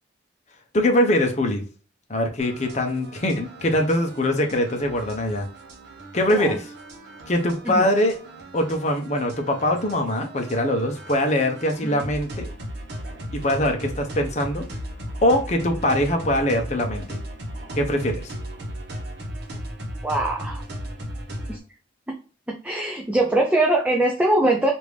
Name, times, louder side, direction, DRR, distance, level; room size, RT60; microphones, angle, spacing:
voice 1, 0.7-1.7 2.1-5.5 6.1-6.7 7.3-8.2 8.5-12.5 13.3-14.7 15.2-17.2 17.8-18.3, left 1 dB, 35° left, 4 dB, 0.6 m, -22 dB
sound 1, 2.4-21.6, equal, 55° right, 1.0 m, -36 dB
voice 2, 20.0-20.6 21.5-21.6 22.6-24.7, right 1 dB, 5° right, 0 dB, 0.4 m, -22 dB
3.4 x 2.5 x 3.2 m, 0.37 s
head